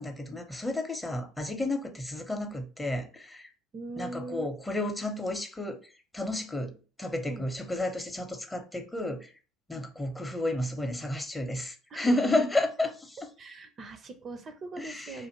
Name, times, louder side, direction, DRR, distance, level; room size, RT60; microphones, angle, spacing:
voice 1, 0.0-3.5 4.0-9.3 9.7-13.2 14.8-15.2, left 1 dB, 15° left, 0.6 m, -32 dB
voice 2, 3.7-4.5 7.3-7.5 9.7-9.9 11.9-12.3 13.4-15.3, right 3 dB, 35° right, 0.4 m, -41 dB
2.5 x 2.5 x 2.7 m
figure-of-eight pair, 65°, 0 cm